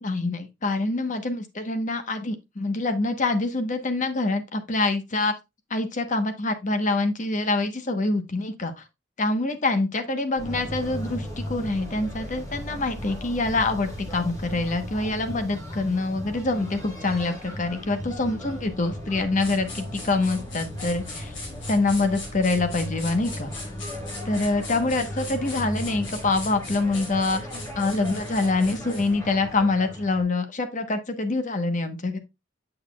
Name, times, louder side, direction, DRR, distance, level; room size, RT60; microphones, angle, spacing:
voice 1, 0.0-5.3 5.7-8.8 9.2-21.3 21.7-23.7 24.3-32.2, left 2 dB, 40° left, 1.0 m, -25 dB
sound 1, 10.4-30.2, equal, 20° left, 3.5 m, -37 dB
sound 2, 19.4-29.1, left 3 dB, 75° left, 3.6 m, -41 dB
7.8 x 6.4 x 2.3 m
head